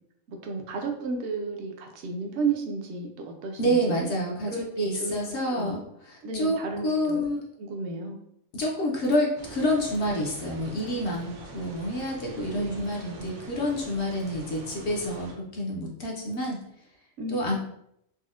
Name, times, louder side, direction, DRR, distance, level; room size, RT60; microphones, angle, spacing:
voice 1, 0.3-4.1 4.5-5.8 6.2-7.3 7.6-8.2 12.5-12.9 17.2-17.6, right 4 dB, 65° right, 3 dB, 0.8 m, -33 dB
voice 2, 3.6-4.5 4.8-7.4 8.5-16.6 17.3-17.6, equal, 65° left, -2 dB, 0.8 m, -28 dB
sound 1, 9.4-15.3, right 2 dB, 85° right, 1.1 m, -44 dB
4.1 x 2.0 x 2.4 m, 0.75 s
omnidirectional pair, 1.4 m